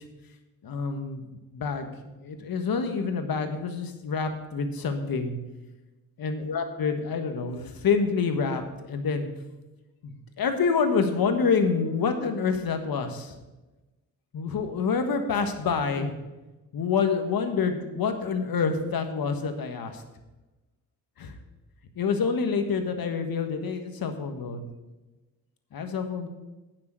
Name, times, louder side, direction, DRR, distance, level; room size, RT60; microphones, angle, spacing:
voice 1, 0.6-1.2 1.5-1.9 2.2-5.4 6.2-9.3 10.0-13.3 14.3-16.1 16.7-20.0 21.2-21.3 21.9-24.7 25.7-26.3, left 5 dB, 65° left, 6 dB, 1.5 m, -27 dB
9.7 x 6.8 x 6.5 m, 1.1 s
supercardioid pair, 50°, 39 cm